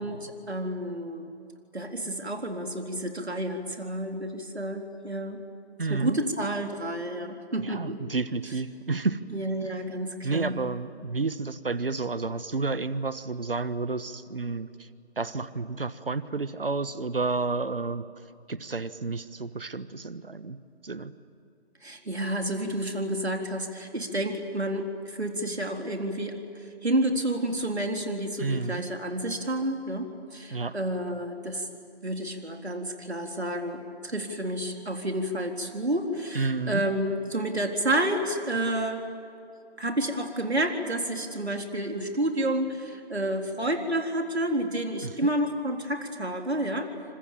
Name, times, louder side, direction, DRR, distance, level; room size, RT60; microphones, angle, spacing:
voice 1, 0.0-1.3 1.7-5.4 5.9-8.0 9.3-10.6 21.8-31.7 32.0-39.0 39.8-46.9, right 1 dB, 75° right, 3 dB, 4.0 m, -30 dB
voice 2, 5.8-6.2 7.6-9.2 10.2-14.7 15.2-18.0 18.5-20.6 20.8-21.1 28.4-28.8 30.5-30.7 36.3-36.8 45.0-45.1, right 3 dB, 60° right, 14 dB, 1.3 m, -30 dB
29.0 x 26.0 x 7.4 m, 2.5 s
figure-of-eight pair, 160°, 32 cm